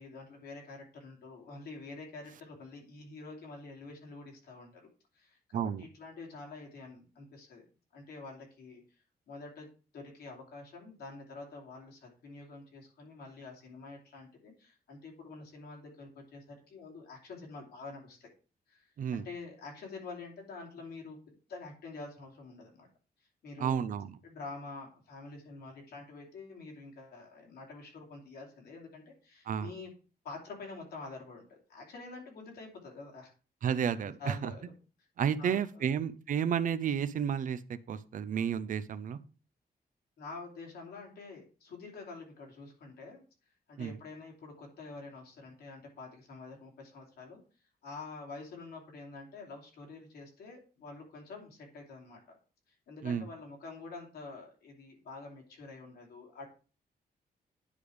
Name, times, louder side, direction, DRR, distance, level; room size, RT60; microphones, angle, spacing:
voice 1, 0.0-4.8 5.1-7.6 7.9-8.8 9.3-9.7 9.9-18.3 18.7-22.9 23.4-23.9 24.2-29.9 30.2-33.3 34.0-34.7 35.4-36.0 40.2-43.2 43.7-47.4 47.8-52.4 52.7-56.4, left 3 dB, 80° left, 2.8 m, -47 dB
voice 2, 5.5-5.8 19.0-19.3 23.6-24.2 29.5-29.7 33.6-34.5 35.2-37.6 37.9-39.2 43.8-44.0 53.0-53.3, right 8 dB, 55° right, 0.6 m, -31 dB
9.9 x 3.4 x 4.9 m
wide cardioid pair, 150°, 16 cm